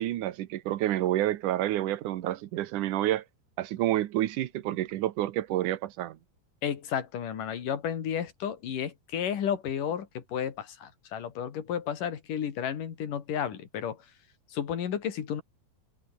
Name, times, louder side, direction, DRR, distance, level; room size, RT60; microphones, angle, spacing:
voice 1, 0.0-3.2 3.6-6.2, right 14 dB, 80° right, 2.5 m, -29 dB
voice 2, 6.6-14.1 14.5-15.4, left 8 dB, 85° left, 4.0 m, -32 dB
omnidirectional pair, 3.7 m